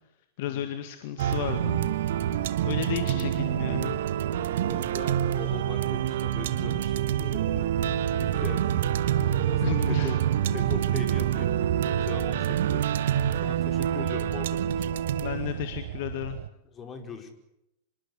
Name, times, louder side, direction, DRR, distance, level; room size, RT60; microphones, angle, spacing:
voice 1, 0.4-1.8 2.6-4.0 9.6-10.1 15.2-16.4, left 11 dB, 50° left, 8 dB, 2.1 m, -33 dB
sound 1, 1.2-16.5, right 10 dB, 60° right, 1.1 m, -27 dB
voice 2, 4.6-7.7 8.1-8.7 9.3-10.2 10.5-11.6 11.8-12.8 13.4-15.0 16.7-17.3, left 5 dB, 25° left, 6 dB, 4.7 m, -40 dB
26.0 x 21.5 x 8.5 m, 0.86 s
figure-of-eight pair, 90°, 0 cm